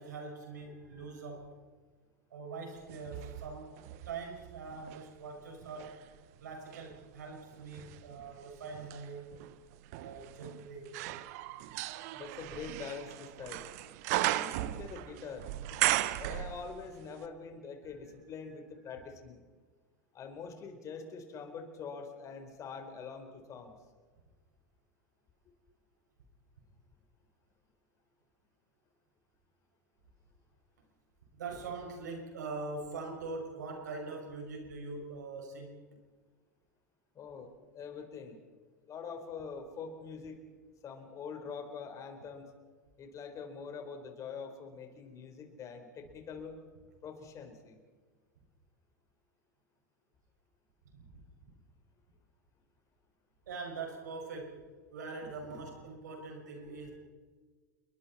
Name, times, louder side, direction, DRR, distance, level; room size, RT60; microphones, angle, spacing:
voice 1, 0.0-1.5 2.3-3.7 4.0-6.0 6.4-9.3 9.9-11.0 18.9-19.0 31.3-35.8 50.9-51.2 53.5-54.6 54.9-57.0, right 3 dB, 80° right, 2 dB, 5.9 m, -43 dB
sound 1, 2.9-5.1 5.6-17.0 17.2-17.3, right 16 dB, 60° right, 1.0 m, -37 dB
voice 2, 12.1-13.6 14.1-15.5 16.1-19.4 20.1-23.8 37.1-38.4 38.8-40.4 40.8-42.5 43.0-46.6 47.0-47.8, left 5 dB, 35° left, 5 dB, 4.2 m, -44 dB
28.5 x 22.5 x 4.3 m, 1.4 s
hypercardioid pair, 95°, 9 cm